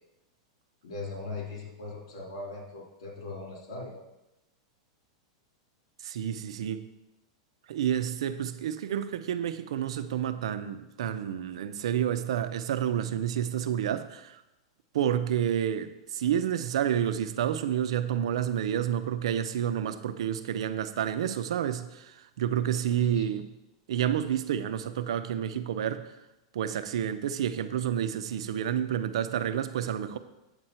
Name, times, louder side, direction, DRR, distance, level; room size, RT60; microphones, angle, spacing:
voice 1, 0.8-4.0 22.8-23.4, left 3 dB, 75° left, 3.0 m, -40 dB
voice 2, 6.0-6.9 7.7-14.4 14.9-23.5 23.9-26.0 26.5-30.2, right 9 dB, 80° right, 0.7 m, -29 dB
8.9 x 7.8 x 4.4 m
supercardioid pair, 155°, 3 cm